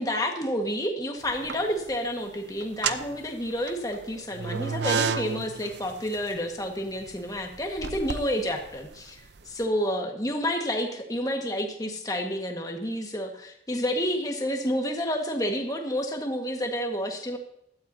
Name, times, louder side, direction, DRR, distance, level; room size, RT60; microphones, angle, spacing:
voice 1, 0.0-17.4, equal, 20° left, 3 dB, 1.6 m, -29 dB
sound 1, 1.2-1.9 2.6-9.5, right 5 dB, 70° right, 0.6 m, -32 dB
16.5 x 12.5 x 2.8 m, 0.77 s
head